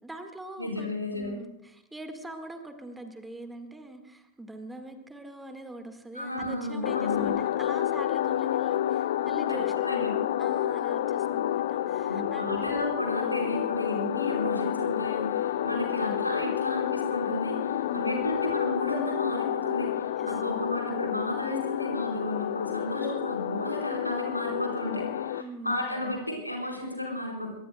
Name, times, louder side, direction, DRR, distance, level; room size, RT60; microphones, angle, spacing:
voice 1, 0.0-10.1 10.4-12.7 17.8-18.2 20.2-20.3 25.4-26.1, right 1 dB, 5° right, 6 dB, 1.7 m, -43 dB
voice 2, 0.6-1.3 6.1-7.3 9.5-9.6 9.9-10.1 12.1-27.5, left 1 dB, 85° left, -1 dB, 4.5 m, -33 dB
sound 1, 6.8-25.4, left 12 dB, 60° left, 0.5 m, -29 dB
24.0 x 20.5 x 2.3 m, 0.88 s
figure-of-eight pair, 90°, 0 cm